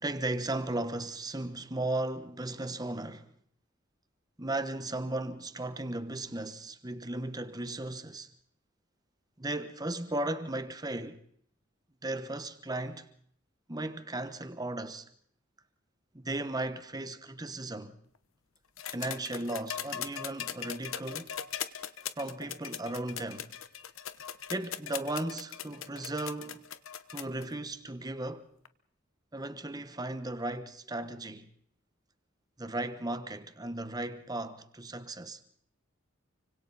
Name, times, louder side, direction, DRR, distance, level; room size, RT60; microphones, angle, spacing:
voice 1, 0.0-3.3 4.4-8.3 9.4-11.2 12.0-13.1 13.7-15.1 16.1-18.0 18.9-21.4 22.2-23.5 24.5-26.7 27.1-28.5 29.3-31.5 32.6-35.4, right 2 dB, 20° right, 1.1 m, -36 dB
sound 1, 18.8-27.4 28.6-28.7, left 9 dB, 85° left, 1.1 m, -39 dB
29.5 x 25.0 x 4.1 m
head